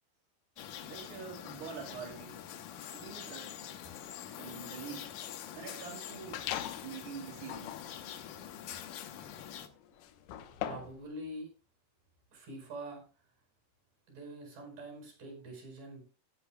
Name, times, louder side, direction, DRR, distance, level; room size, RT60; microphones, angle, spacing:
sound 1, 0.6-9.7, left 10 dB, 70° left, 2.1 m, -45 dB
voice 1, 0.8-2.3 2.9-3.6 4.3-5.1 5.5-6.5 6.8-7.7, right 6 dB, 85° right, -1 dB, 4.4 m, -45 dB
sound 2, 6.3-6.9 7.4-11.0, left 11 dB, 90° left, 3.0 m, -41 dB
voice 2, 10.6-11.5 12.3-13.0 14.1-16.0, right 1 dB, 55° right, 3 dB, 6.3 m, -45 dB
17.0 x 10.5 x 2.3 m, 0.35 s
omnidirectional pair, 4.6 m